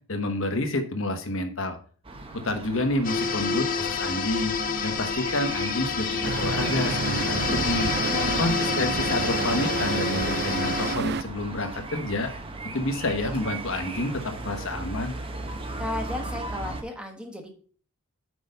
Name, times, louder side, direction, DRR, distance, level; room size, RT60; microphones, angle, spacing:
voice 1, 0.1-1.8 2.3-4.5 4.8-7.9 8.4-12.3 12.7-15.2, left 1 dB, 60° left, 6 dB, 1.2 m, -29 dB
sound 1, 2.0-16.8, right 2 dB, 25° right, 0.8 m, -38 dB
sound 2, 3.0-11.0, left 6 dB, 40° left, 0.7 m, -28 dB
Traffic noise roadway noise, 6.2-11.2, right 5 dB, 45° right, 0.3 m, -29 dB
voice 2, 7.9-8.6 15.8-17.5, left 2 dB, 5° right, 4 dB, 1.2 m, -34 dB
6.3 x 5.1 x 5.2 m, 0.43 s
head